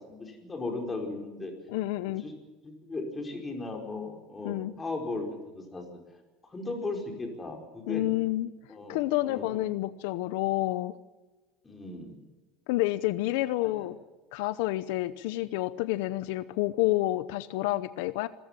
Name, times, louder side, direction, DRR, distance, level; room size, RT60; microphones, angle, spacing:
voice 1, 0.1-1.5 2.2-2.3 2.6-5.3 5.5-6.0 6.5-8.0 8.7-9.4 11.6-12.1 13.6-13.9, left 3 dB, 15° left, 3 dB, 4.8 m, -37 dB
voice 2, 1.7-2.2 4.4-4.7 7.9-8.5 8.9-11.0 12.7-14.0 14.3-18.3, left 17 dB, 80° left, 15 dB, 0.7 m, -29 dB
26.0 x 14.5 x 7.4 m, 1.2 s
cardioid pair, 145°, 0 cm